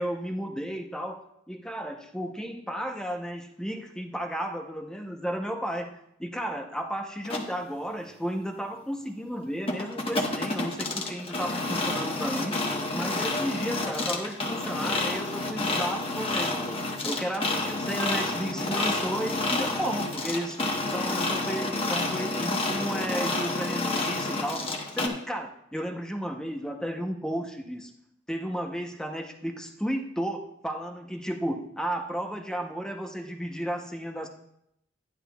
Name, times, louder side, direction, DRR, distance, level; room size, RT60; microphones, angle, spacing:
voice 1, 0.0-12.6 12.9-20.6 20.9-27.9 28.3-34.3, equal, 5° left, 4 dB, 0.7 m, -33 dB
sound 1, 7.2-7.5 9.7-25.1, left 2 dB, 30° left, 1.1 m, -29 dB
12.0 x 10.0 x 2.3 m, 0.76 s
head